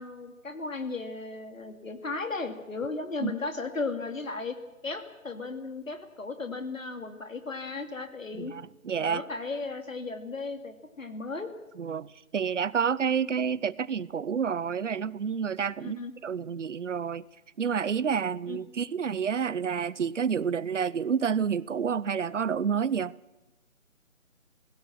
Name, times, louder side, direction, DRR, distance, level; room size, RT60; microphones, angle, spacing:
voice 1, 0.0-4.6 4.8-8.5 9.0-11.5 15.8-16.1 18.5-18.6, left 3 dB, 70° left, 2.7 m, -35 dB
voice 2, 8.4-9.2 11.8-17.2 17.6-23.1, right 7 dB, 60° right, 0.7 m, -29 dB
29.5 x 16.5 x 6.0 m
figure-of-eight pair, 165°, 40 cm